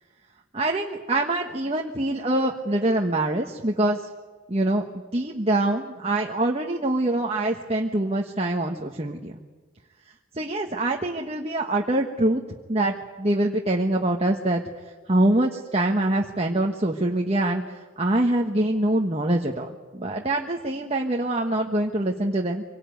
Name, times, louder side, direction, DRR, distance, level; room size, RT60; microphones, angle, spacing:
voice 1, 0.5-4.1 4.5-4.8 5.1-9.3 10.3-12.4 12.7-14.6 15.1-22.6, right 1 dB, 30° right, 1 dB, 1.2 m, -24 dB
25.5 x 18.5 x 9.3 m, 1.4 s
head